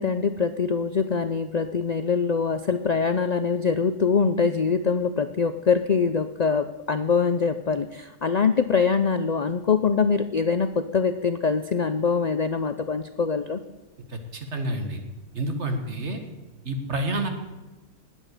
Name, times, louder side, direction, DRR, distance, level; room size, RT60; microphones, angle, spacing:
voice 1, 0.0-13.6, left 5 dB, 80° left, 10 dB, 0.3 m, -24 dB
voice 2, 14.1-15.0 15.4-16.2 16.7-17.3, right 1 dB, 50° right, 5 dB, 2.0 m, -29 dB
19.5 x 8.2 x 6.6 m, 1.1 s
omnidirectional pair, 1.5 m